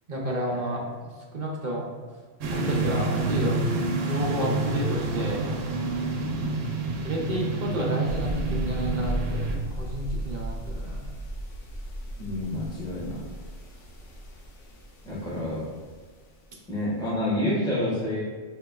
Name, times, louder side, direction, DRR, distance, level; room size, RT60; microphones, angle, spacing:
voice 1, 0.1-1.9 2.5-3.7 4.0-5.5 7.0-9.4 9.8-11.1, right 1 dB, 50° right, -2 dB, 0.6 m, -31 dB
sound 1, 2.4-9.6, right 3 dB, 80° right, 0.9 m, -28 dB
sound 2, 8.0-16.5, right 1 dB, 75° left, 1.0 m, -35 dB
voice 2, 12.2-13.2 15.0-15.6 16.7-18.2, left 1 dB, 5° left, -9 dB, 1.2 m, -28 dB
5.0 x 2.8 x 2.3 m, 1.5 s
omnidirectional pair, 1.3 m